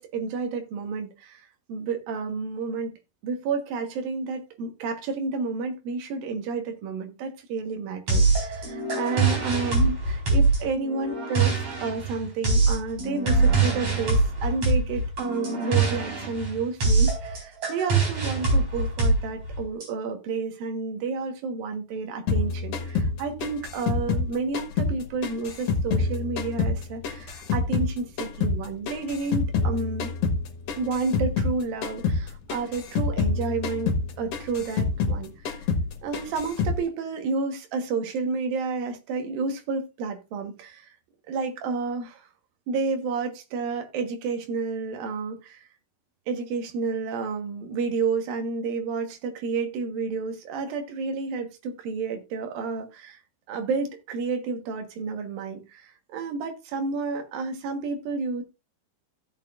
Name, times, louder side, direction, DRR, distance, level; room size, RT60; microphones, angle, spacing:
voice 1, 0.0-2.9 3.2-30.1 30.8-35.6 36.0-41.0 41.3-42.3 42.7-45.7 46.3-53.2 53.5-58.4, right 4 dB, 75° right, 3.2 m, -30 dB
sound 1, 8.1-19.9, right 3 dB, 45° right, 5.5 m, -23 dB
sound 2, 22.3-25.0 25.2-27.9 28.2-31.6 31.8-32.2 32.5-35.2 35.5-35.9 36.1-36.8, left 4 dB, 55° left, 2.1 m, -26 dB
16.0 x 6.7 x 2.5 m
omnidirectional pair, 4.3 m